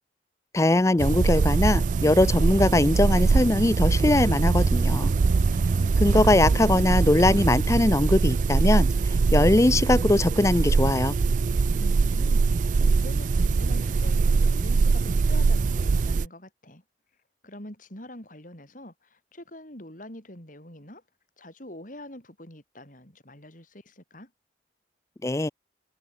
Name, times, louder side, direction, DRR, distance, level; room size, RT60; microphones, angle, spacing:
voice 1, 0.5-5.1 6.0-11.2 25.2-25.5, left 2 dB, 15° left, 0.5 m, -21 dB
sound 1, 1.0-16.3, right 4 dB, 45° right, 0.3 m, -22 dB
voice 2, 5.5-6.3 11.8-16.8 17.4-21.0 21.4-24.3, left 1 dB, 45° left, 6.1 m, -44 dB
head